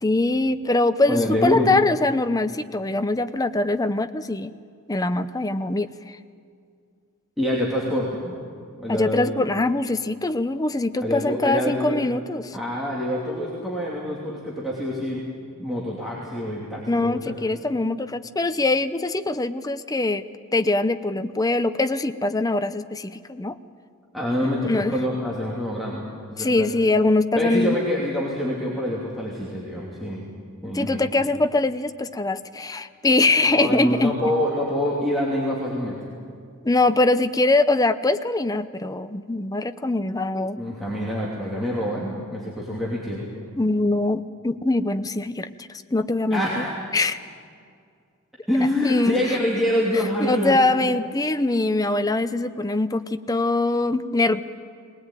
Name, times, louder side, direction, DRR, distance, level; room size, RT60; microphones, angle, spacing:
voice 1, 0.0-4.5 4.9-6.2 8.9-12.6 16.9-20.2 20.5-23.6 24.4-24.9 26.4-27.8 30.7-34.1 36.6-40.6 43.6-46.6 46.9-47.2 48.8-49.4 50.2-54.4, left 2 dB, 15° left, 10 dB, 0.6 m, -23 dB
voice 2, 1.1-1.7 7.4-8.4 8.8-9.3 11.0-12.0 12.5-15.2 15.5-17.3 24.1-26.0 26.3-26.7 27.3-30.2 30.6-31.1 33.4-36.0 40.6-43.3 46.3-46.9 48.5-50.6, left 1 dB, ahead, -6 dB, 2.8 m, -26 dB
20.5 x 19.5 x 9.1 m, 2.3 s
head